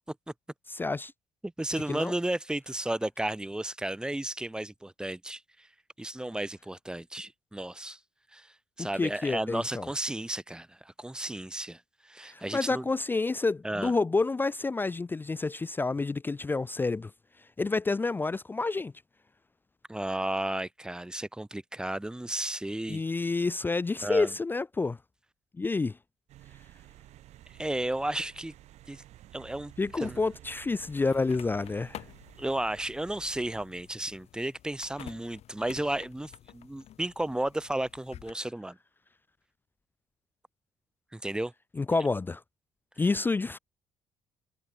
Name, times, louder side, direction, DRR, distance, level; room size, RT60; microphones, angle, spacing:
voice 1, 0.7-1.1 1.9-2.1 8.8-9.9 12.3-17.1 17.6-18.9 22.9-25.0 25.6-26.0 29.8-32.0 41.8-42.4 43.0-43.6, left 3 dB, 15° left, 0.3 m, -29 dB
voice 2, 1.4-5.7 6.0-8.0 8.3-12.9 13.6-13.9 19.9-23.0 24.0-24.3 27.6-28.5 28.9-29.0 29.3-30.2 32.4-38.8 41.1-41.5, right 1 dB, 5° right, 0.7 m, -33 dB
sound 1, 26.3-33.7, right 14 dB, 75° right, 2.4 m, -52 dB
sound 2, 30.8-38.3, left 12 dB, 65° left, 1.2 m, -50 dB
cardioid pair, 85°, 12 cm